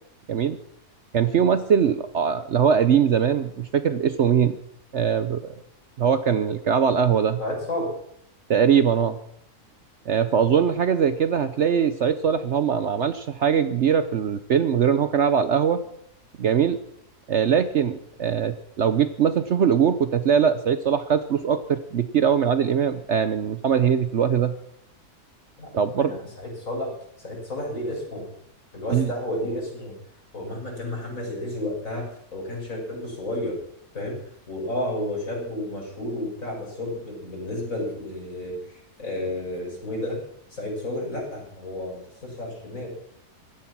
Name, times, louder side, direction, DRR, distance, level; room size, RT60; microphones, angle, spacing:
voice 1, 1.1-4.6 4.9-5.5 6.0-7.4 8.5-9.2 10.1-15.8 16.4-16.8 17.3-24.5 25.7-26.1 28.9-29.1, right 7 dB, 55° right, 11 dB, 0.9 m, -21 dB
voice 2, 7.4-7.9 25.6-25.7 26.0-26.9 27.2-28.3 28.7-29.9 30.3-33.6 33.9-34.2 34.5-40.2 40.5-42.9, left 1 dB, 60° left, -1 dB, 6.3 m, -31 dB
16.5 x 13.0 x 6.0 m, 0.72 s
omnidirectional pair, 1.6 m